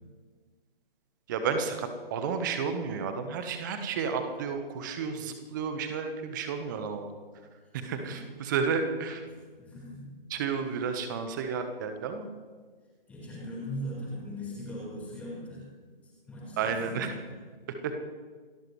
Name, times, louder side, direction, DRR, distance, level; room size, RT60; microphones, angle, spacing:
voice 1, 1.3-7.1 7.7-9.3 10.3-12.3 16.6-17.1 17.8-18.0, right 5 dB, 20° right, 7 dB, 1.1 m, -32 dB
voice 2, 9.6-10.1 13.1-15.7 16.0-17.2, equal, 5° left, -6 dB, 4.4 m, -39 dB
28.5 x 13.0 x 3.2 m, 1.5 s
figure-of-eight pair, 145°, 29 cm